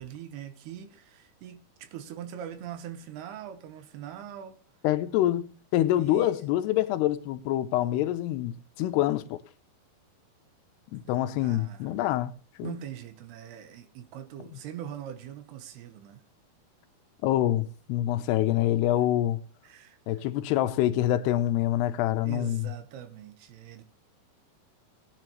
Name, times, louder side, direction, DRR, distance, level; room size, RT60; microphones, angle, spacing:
voice 1, 0.0-4.6 6.0-6.4 10.9-11.0 11.4-11.9 12.6-16.2 19.6-20.2 22.2-23.8, right 10 dB, 85° right, 3.1 m, -42 dB
voice 2, 4.8-9.4 10.9-12.3 12.6-12.8 14.5-14.6 17.2-19.4 20.1-22.7, left 13 dB, 85° left, 2.9 m, -26 dB
18.5 x 9.9 x 3.2 m
omnidirectional pair, 4.7 m